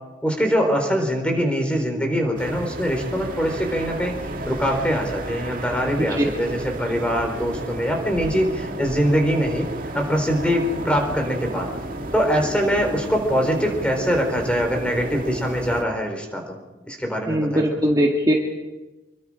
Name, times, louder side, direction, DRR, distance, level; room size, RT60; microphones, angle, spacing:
voice 1, 0.2-4.2 4.5-9.7 9.9-11.7 12.1-16.6 16.9-17.6, equal, 5° left, 3 dB, 4.2 m, -23 dB
sound 1, 2.4-15.8, right 1 dB, 45° right, 2.1 m, -32 dB
voice 2, 17.3-18.3, equal, 20° right, -1 dB, 1.8 m, -20 dB
26.5 x 22.5 x 5.0 m, 1.1 s
head